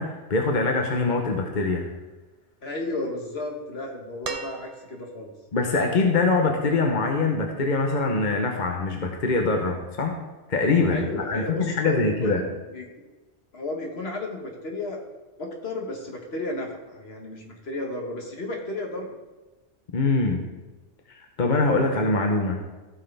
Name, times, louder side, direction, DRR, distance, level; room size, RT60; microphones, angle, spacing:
voice 1, 0.0-1.9 5.5-10.1 10.5-12.4 19.9-20.4 21.1-22.6, left 3 dB, 45° left, 2 dB, 1.0 m, -23 dB
voice 2, 2.6-5.3 10.9-12.4 12.7-12.9 13.5-15.0 15.4-19.2, left 2 dB, 60° left, 1 dB, 1.7 m, -33 dB
sound 1, 4.2-5.3 6.8-6.9, right 4 dB, 40° right, 0.7 m, -37 dB
15.0 x 6.4 x 3.4 m, 1.2 s
omnidirectional pair, 1.2 m